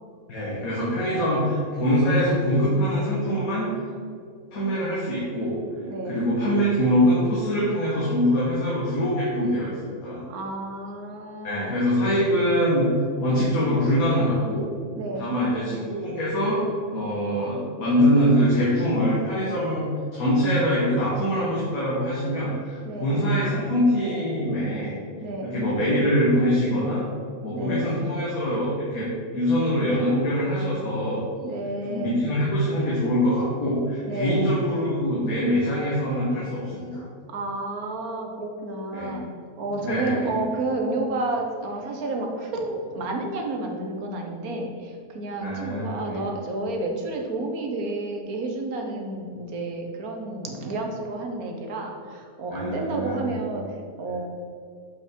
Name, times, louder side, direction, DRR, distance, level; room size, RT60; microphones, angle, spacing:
voice 1, 0.3-3.7 4.5-5.6 6.1-10.2 11.4-12.9 13.2-14.6 15.2-16.6 16.9-19.9 20.1-24.9 25.4-27.0 27.4-31.2 31.8-37.0 38.9-39.2 39.8-40.4 45.4-46.2 52.5-53.3, equal, 75° left, -7 dB, 2.0 m, -23 dB
voice 2, 5.9-6.2 10.3-11.7 15.0-15.3 22.8-23.1 25.2-25.5 27.5-28.0 31.4-32.1 34.0-34.4 37.3-39.2 39.6-53.6 54.0-54.3, right 2 dB, 80° right, 2 dB, 1.5 m, -30 dB
7.1 x 5.8 x 4.4 m, 2.3 s
omnidirectional pair, 1.5 m